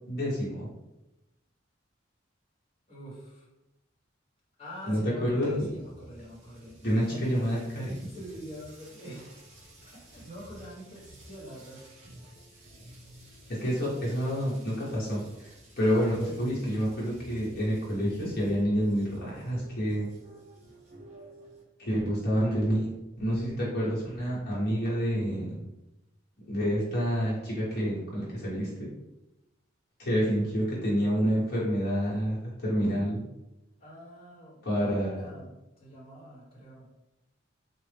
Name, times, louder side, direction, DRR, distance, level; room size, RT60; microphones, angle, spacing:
voice 1, 0.1-0.7 4.9-5.7 6.8-8.1 13.5-20.1 21.8-25.6 26.5-28.9 30.0-33.2 34.6-35.2, equal, 55° left, -7 dB, 1.2 m, -28 dB
voice 2, 2.9-3.5 4.6-7.6 8.1-9.6 9.9-11.8 15.9-16.6 33.8-35.5 35.8-36.9, equal, 30° left, -7 dB, 1.3 m, -45 dB
sound 1, 5.4-21.6, right 1 dB, 35° right, 0.9 m, -52 dB
3.8 x 2.4 x 3.4 m, 0.94 s
head